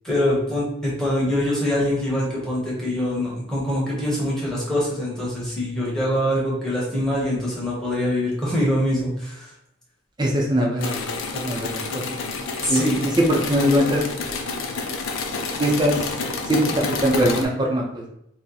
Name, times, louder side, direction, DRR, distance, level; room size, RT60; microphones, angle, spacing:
voice 1, 0.0-9.5 12.6-13.0, left 1 dB, 5° left, -6 dB, 0.9 m, -24 dB
voice 2, 10.2-11.0 11.3-12.2 12.6-12.8 13.2-14.0 15.6-15.9 16.5-18.1, equal, 20° right, -1 dB, 0.5 m, -21 dB
sound 1, 10.8-17.5, left 3 dB, 85° left, 0.5 m, -29 dB
2.8 x 2.1 x 3.8 m, 0.78 s
head